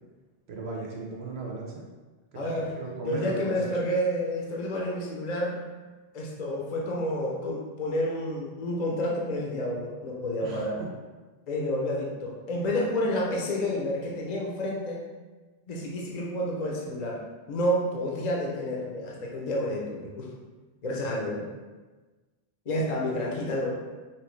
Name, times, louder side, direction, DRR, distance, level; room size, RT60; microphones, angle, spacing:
voice 1, 0.5-1.9 2.3-3.3 10.4-10.9 20.9-21.0, right 3 dB, 90° right, -1 dB, 1.1 m, -37 dB
voice 2, 2.3-2.7 3.1-5.6 6.1-10.7 11.5-15.0 15.7-17.2 17.5-20.3 20.8-21.4 22.7-23.7, left 1 dB, 45° left, -3 dB, 0.8 m, -29 dB
5.8 x 2.8 x 3.2 m, 1.3 s
omnidirectional pair, 1.0 m